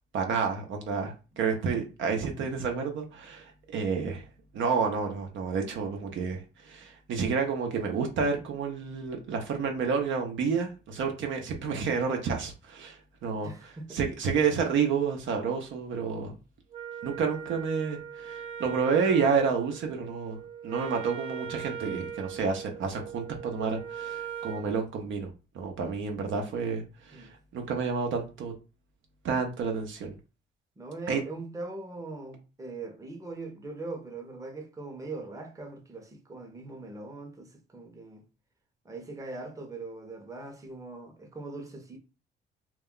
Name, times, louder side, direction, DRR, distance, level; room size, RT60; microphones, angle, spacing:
voice 1, 0.1-4.2 4.5-13.5 13.9-16.3 17.0-20.4 20.6-25.3 25.5-28.5 29.2-30.1 31.1-31.2, right 5 dB, 75° right, 0.6 m, -30 dB
voice 2, 13.4-14.0 27.1-27.3 30.8-38.2 38.8-42.0, right 3 dB, 15° right, 0.7 m, -41 dB
Wind instrument woodwind instrument, 16.7-24.7, right 8 dB, 40° right, 0.9 m, -40 dB
2.3 x 2.1 x 3.6 m
cardioid pair, 90°, 20 cm